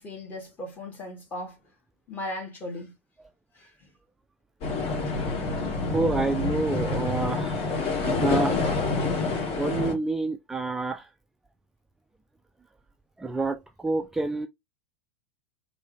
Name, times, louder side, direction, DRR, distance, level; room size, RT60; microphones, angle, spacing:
voice 1, 0.0-1.6 2.1-2.9 3.5-3.9, left 1 dB, 25° left, 1.8 m, -37 dB
sound 1, 4.6-9.9, left 3 dB, 40° left, 2.3 m, -27 dB
voice 2, 5.8-7.8 8.1-8.6 9.6-11.1 13.2-14.5, right 3 dB, 5° right, 0.3 m, -28 dB
4.5 x 2.7 x 3.2 m
figure-of-eight pair, 90°, 7 cm